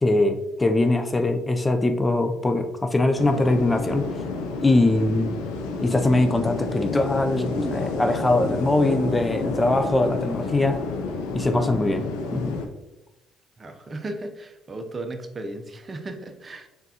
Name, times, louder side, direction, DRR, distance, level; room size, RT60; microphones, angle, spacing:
voice 1, 0.0-4.1 4.6-5.3 5.8-10.8 11.3-12.1 12.3-12.6, left 2 dB, 20° left, 7 dB, 0.4 m, -22 dB
sound 1, 3.2-12.7, left 3 dB, 85° left, 0.5 m, -30 dB
voice 2, 13.6-16.7, right 2 dB, 35° right, 6 dB, 0.6 m, -35 dB
3.7 x 3.5 x 2.8 m, 0.94 s
supercardioid pair, 65°, 0 cm